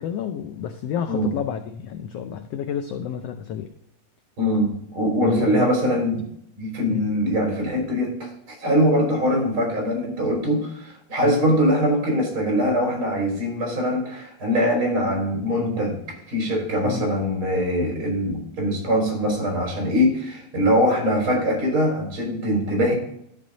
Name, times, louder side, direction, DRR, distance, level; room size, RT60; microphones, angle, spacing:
voice 1, 0.0-3.7 5.2-6.0 6.9-7.0 11.2-11.4 16.8-17.1, left 8 dB, 85° left, 7 dB, 1.4 m, -30 dB
voice 2, 4.4-6.3 6.6-16.0 16.3-22.9, equal, 40° right, 0 dB, 4.2 m, -22 dB
13.0 x 5.2 x 3.9 m, 0.73 s
omnidirectional pair, 3.5 m